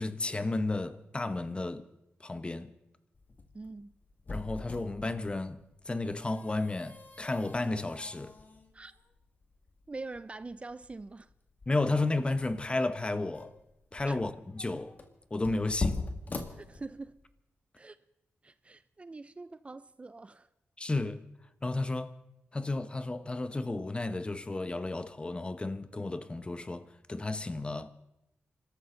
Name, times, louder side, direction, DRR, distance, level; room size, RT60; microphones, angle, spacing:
voice 1, 0.0-1.8 2.2-2.7 4.3-5.6 5.9-8.3 11.7-13.5 13.9-14.9 15.3-16.0 20.8-21.2 21.6-22.1 22.5-27.9, left 2 dB, 25° left, 0.9 m, -32 dB
sound 1, 3.1-17.3, left 3 dB, 45° left, 2.0 m, -42 dB
voice 2, 3.5-4.0 8.7-8.9 9.9-11.3 14.0-14.2 16.5-17.2 17.8-18.0 18.4-20.5, right 3 dB, 30° right, 0.5 m, -44 dB
26.5 x 13.0 x 3.9 m
cardioid pair, 75°, 4 cm